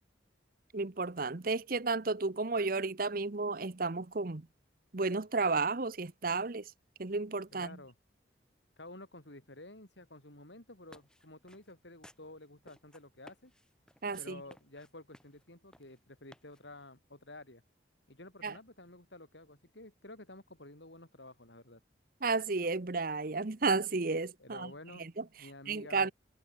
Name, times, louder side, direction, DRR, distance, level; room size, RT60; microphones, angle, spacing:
voice 1, 0.7-4.5 4.9-6.6 7.0-7.8 14.0-14.4 18.4-18.5 22.2-24.7 25.0-25.2 25.7-26.1, right 3 dB, 50° right, 0.9 m, -32 dB
voice 2, 7.5-7.9 8.8-13.5 14.2-17.6 18.1-21.8 24.4-25.1 25.4-26.1, left 2 dB, 75° left, 5.4 m, -51 dB
sound 1, 10.7-16.9, equal, 5° left, 4.5 m, -60 dB
head